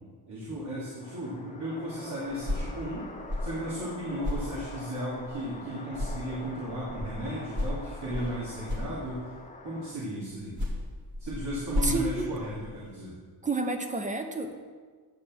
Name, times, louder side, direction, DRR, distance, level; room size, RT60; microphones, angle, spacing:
voice 1, 0.3-3.1 3.4-9.3 9.6-10.6 11.2-13.2, right 1 dB, 80° right, -10 dB, 2.7 m, -35 dB
sound 1, 1.0-9.9, left 3 dB, 20° left, 0.6 m, -45 dB
sound 2, 2.2-5.6 5.9-9.5 10.3-13.0, left 1 dB, 45° right, 2.4 m, -35 dB
voice 2, 11.8-12.3 13.4-14.5, right 3 dB, 20° right, 5 dB, 0.7 m, -30 dB
10.0 x 4.3 x 7.3 m, 1.6 s
wide cardioid pair, 160°, 41 cm